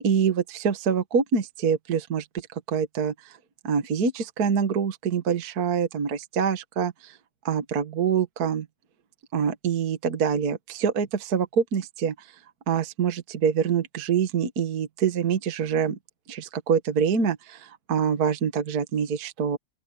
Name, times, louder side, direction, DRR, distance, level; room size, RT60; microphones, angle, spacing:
voice 1, 0.0-2.2 2.5-3.4 3.6-7.2 7.4-8.7 9.3-12.3 12.7-16.0 16.3-19.6, right 7 dB, 55° right, 1.0 m, -25 dB
open air
omnidirectional pair, 4.1 m